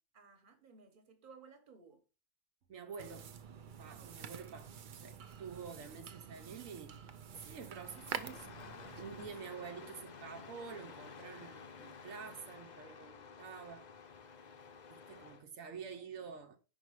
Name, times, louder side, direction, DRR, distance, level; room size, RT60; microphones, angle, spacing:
voice 1, 0.1-2.0 3.9-4.2 15.0-15.4, right 5 dB, 40° right, 1.3 m, -59 dB
voice 2, 2.7-3.3 3.8-7.0 7.3-8.6 8.9-13.9 14.9-16.6, right 6 dB, 80° right, 1.2 m, -48 dB
sound 1, 3.0-9.4, right 7 dB, 55° right, 0.5 m, -48 dB
Engine starting, 7.3-15.4, left 5 dB, 45° left, 0.6 m, -53 dB
5.4 x 4.6 x 4.7 m
omnidirectional pair, 1.4 m